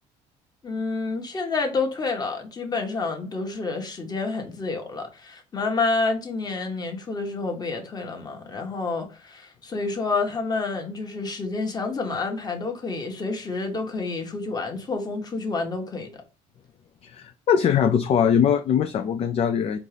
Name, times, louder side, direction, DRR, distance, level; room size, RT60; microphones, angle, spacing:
voice 1, 0.6-16.2, left 3 dB, 30° left, 1.3 m, -29 dB
voice 2, 17.0-19.8, left 8 dB, 45° left, 0.4 m, -21 dB
4.2 x 2.4 x 3.4 m
supercardioid pair, 90°, 14 cm